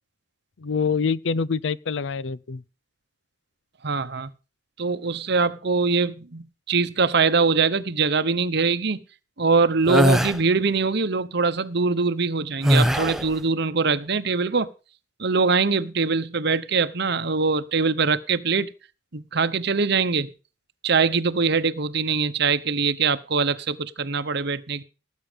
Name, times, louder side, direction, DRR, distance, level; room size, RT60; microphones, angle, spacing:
voice 1, 0.6-2.6, left 5 dB, 75° left, 0.6 m, -25 dB
voice 2, 3.8-4.3 4.8-9.0 9.4-14.7 15.2-18.7 19.1-20.3 20.8-24.8, right 4 dB, 60° right, 1.0 m, -23 dB
sound 1, 9.9-10.4 12.6-13.3, equal, ahead, 0.6 m, -20 dB
18.5 x 8.4 x 5.2 m
head